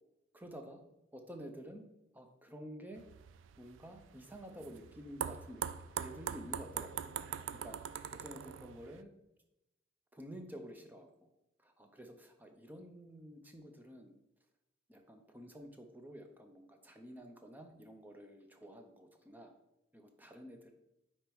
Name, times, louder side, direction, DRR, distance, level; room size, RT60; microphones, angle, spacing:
voice 1, 0.3-0.8 1.1-1.8 2.1-3.0 3.6-5.6 5.9-7.2 7.6-7.8 8.1-9.1 10.1-11.3 11.6-14.2 14.9-19.5 19.9-20.7, equal, 10° right, 4 dB, 0.5 m, -50 dB
sound 1, 3.0-9.0, right 8 dB, 85° right, 0.3 m, -42 dB
5.2 x 4.2 x 4.5 m, 0.92 s
head